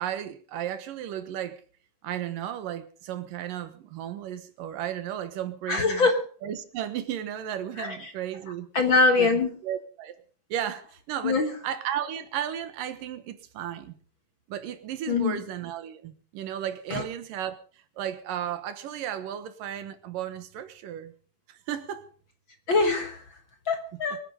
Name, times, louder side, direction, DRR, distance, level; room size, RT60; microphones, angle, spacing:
voice 1, 0.0-1.6 2.0-6.1 6.4-8.7 9.2-10.1 10.5-14.0 14.5-17.6 18.0-21.1 21.5-22.1, right 10 dB, 85° right, 3.0 m, -34 dB
voice 2, 5.7-6.2 7.8-8.1 8.7-9.5 11.2-11.5 15.1-15.4 16.9-17.0 22.7-23.2 23.7-24.2, left 3 dB, 50° left, 1.7 m, -23 dB
23.5 x 10.0 x 5.3 m
omnidirectional pair, 3.8 m